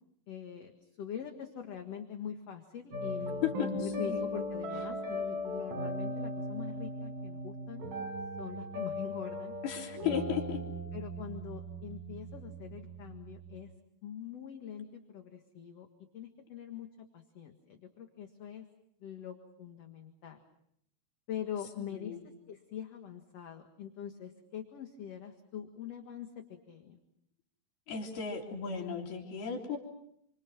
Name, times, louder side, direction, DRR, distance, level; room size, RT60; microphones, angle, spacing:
voice 1, 0.3-0.7 1.0-7.8 8.4-9.5 10.1-10.4 10.9-13.7 14.0-15.9 16.1-18.7 19.0-20.4 21.3-27.0, left 9 dB, 50° left, 5 dB, 2.4 m, -43 dB
sound 1, 2.9-13.6, left 1 dB, 70° right, 6.5 m, -38 dB
voice 2, 9.6-10.6 21.9-22.2 27.9-29.8, left 8 dB, 90° left, 1 dB, 5.2 m, -35 dB
29.5 x 25.5 x 6.1 m, 0.74 s
omnidirectional pair, 4.3 m